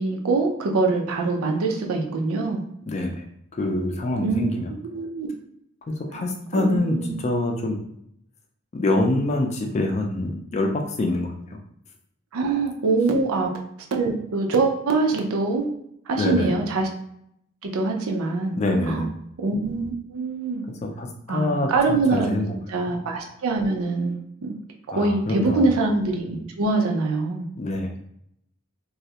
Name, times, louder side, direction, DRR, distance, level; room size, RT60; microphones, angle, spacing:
voice 1, 0.0-2.6 4.2-4.4 4.9-5.3 6.1-6.2 6.5-7.2 12.3-13.5 13.9-15.7 16.1-16.9 17.6-18.6 18.9-19.0 19.4-20.6 21.3-22.3 22.7-24.6 24.9-27.5, right 3 dB, 90° right, 2 dB, 0.5 m, -24 dB
voice 2, 2.9-3.2 3.5-4.7 5.9-7.8 8.7-11.6 16.2-16.5 18.5-19.1 21.0-22.5 24.9-25.6 27.6-28.1, left 2 dB, 30° left, 3 dB, 0.3 m, -25 dB
2.3 x 2.0 x 2.7 m, 0.74 s
head